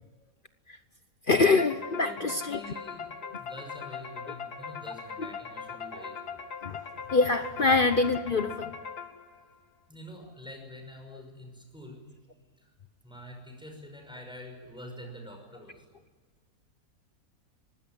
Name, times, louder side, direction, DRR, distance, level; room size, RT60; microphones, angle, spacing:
voice 1, 1.3-2.6 5.2-5.3 5.9-6.0 6.6-6.8 7.1-8.7, left 3 dB, 40° left, 9 dB, 0.9 m, -25 dB
sound 1, 1.6-9.4, left 6 dB, 80° left, 2.8 m, -40 dB
voice 2, 2.0-3.1 3.4-6.4 9.9-12.0 12.5-12.6 13.0-15.9, equal, 5° right, 2 dB, 5.7 m, -46 dB
24.5 x 19.0 x 9.2 m, 1.5 s
omnidirectional pair, 1.6 m